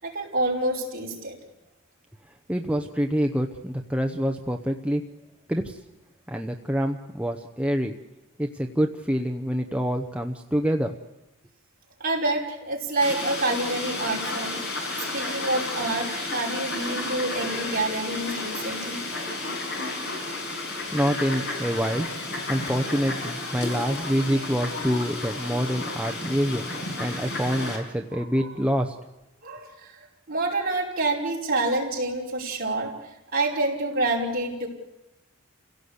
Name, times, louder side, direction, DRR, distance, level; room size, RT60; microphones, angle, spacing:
voice 1, 0.0-1.4 12.0-14.6 15.0-19.1 19.9-20.4 21.3-21.4 21.7-22.1 23.7-23.8 28.1-28.5 29.4-34.7, right 2 dB, 45° right, -2 dB, 5.3 m, -28 dB
voice 2, 2.5-5.0 5.5-5.8 6.3-8.0 8.4-10.9 20.9-22.1 22.5-26.7 27.0-29.0, equal, 5° right, 4 dB, 0.8 m, -26 dB
Fowl, 13.0-27.8, left 2 dB, 55° left, 5.9 m, -32 dB
29.0 x 17.0 x 8.1 m, 1.0 s
head